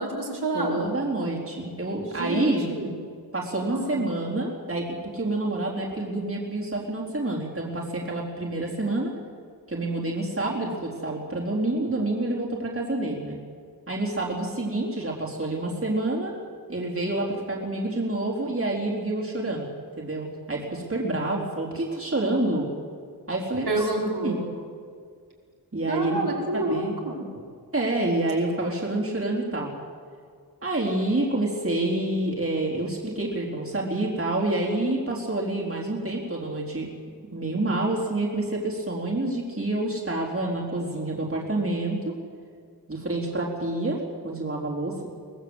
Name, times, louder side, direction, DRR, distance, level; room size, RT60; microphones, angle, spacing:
voice 1, 0.0-0.9 2.0-3.0 3.6-4.0 23.7-24.4 25.9-27.2, right 2 dB, 75° right, -3 dB, 5.2 m, -28 dB
voice 2, 0.5-2.7 3.3-9.1 9.7-13.4 13.9-16.3 16.7-19.7 20.0-22.7 23.3-23.9 24.2-24.4 25.7-26.2 26.5-26.9 27.7-29.7 30.6-36.9 37.3-42.2 42.9-45.1, right 2 dB, 35° right, -4 dB, 4.2 m, -28 dB
24.0 x 18.5 x 8.2 m, 2.1 s
wide cardioid pair, 80°, 39 cm